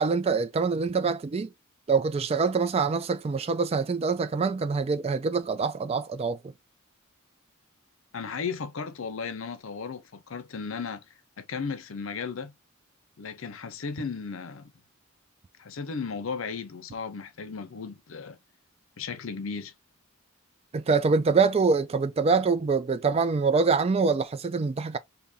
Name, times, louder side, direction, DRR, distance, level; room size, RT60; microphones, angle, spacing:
voice 1, 0.0-1.5 1.9-6.5 20.7-25.0, right 4 dB, 30° right, 0.3 m, -25 dB
voice 2, 8.1-11.1 11.4-12.5 13.2-14.7 15.6-18.4 19.0-19.7, left 5 dB, 65° left, 0.6 m, -35 dB
2.7 x 2.7 x 3.5 m
head